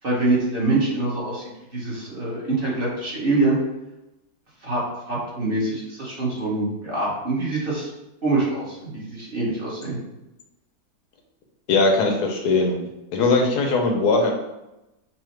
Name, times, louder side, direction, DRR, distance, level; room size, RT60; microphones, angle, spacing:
voice 1, 0.0-1.4 1.7-3.6 4.6-4.8 5.1-7.9 8.2-10.0, right 2 dB, 40° right, -5 dB, 1.0 m, -24 dB
voice 2, 11.7-12.8 13.1-14.3, left 3 dB, 85° left, 2 dB, 1.3 m, -20 dB
5.5 x 2.1 x 3.2 m, 0.95 s
omnidirectional pair, 1.7 m